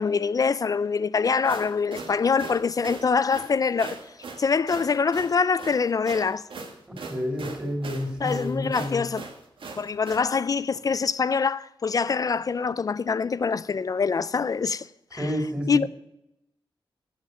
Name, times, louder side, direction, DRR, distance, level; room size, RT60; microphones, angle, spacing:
voice 1, 0.0-4.0 4.4-6.5 8.2-9.2 9.8-15.3 15.7-15.9, left 5 dB, 45° left, 0.3 m, -24 dB
sound 1, 1.3-10.3, right 4 dB, 80° right, 1.6 m, -40 dB
voice 2, 7.1-9.0 15.1-15.9, equal, 10° right, 3.1 m, -29 dB
8.2 x 7.4 x 8.0 m
wide cardioid pair, 130°, 9 cm